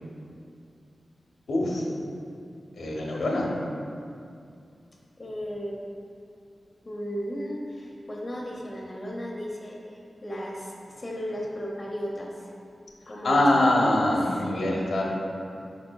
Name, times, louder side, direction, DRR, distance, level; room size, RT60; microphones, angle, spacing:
voice 1, 1.5-1.8 2.8-3.5 13.2-15.1, left 1 dB, 90° left, -2 dB, 0.6 m, -23 dB
voice 2, 5.2-5.8 6.8-12.5 13.1-14.5, equal, 30° left, -2 dB, 0.6 m, -35 dB
4.8 x 4.7 x 2.2 m, 2.4 s
wide cardioid pair, 105°, 0 cm